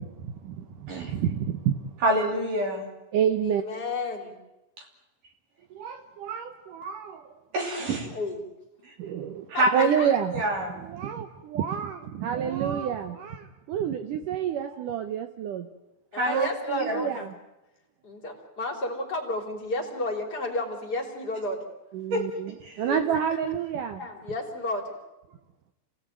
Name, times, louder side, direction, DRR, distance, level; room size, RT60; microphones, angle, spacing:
voice 1, 0.0-1.9 3.1-3.6 5.7-7.3 9.0-10.3 10.8-15.7 16.3-16.5 16.8-17.3 21.9-24.0, right 8 dB, 80° right, 8 dB, 1.8 m, -29 dB
voice 2, 2.0-2.9 7.5-8.1 9.5-9.9 10.3-10.8 16.2-17.0 22.1-22.2 22.6-22.7, right 1 dB, 50° right, 1 dB, 4.1 m, -26 dB
voice 3, 3.4-4.4 8.0-8.5 9.5-10.1 16.1-17.3 18.0-21.6 22.8-23.1 24.0-24.9, left 2 dB, 25° left, 2 dB, 3.2 m, -32 dB
28.0 x 17.5 x 9.2 m, 1.0 s
omnidirectional pair, 5.1 m